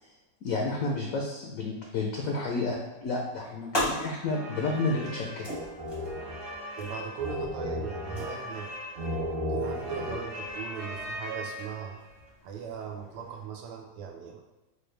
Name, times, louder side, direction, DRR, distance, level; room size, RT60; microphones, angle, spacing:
voice 1, 0.4-5.5, left 3 dB, 70° left, 0 dB, 0.8 m, -31 dB
sound 1, 3.1-13.4, left 1 dB, 30° left, 0.5 m, -40 dB
sound 2, 4.2-12.1, equal, 50° right, 0.7 m, -36 dB
voice 2, 6.8-8.7 9.5-12.0 12.4-14.4, right 7 dB, 85° right, 2 dB, 1.3 m, -38 dB
4.4 x 2.2 x 3.2 m, 1.1 s
omnidirectional pair, 1.9 m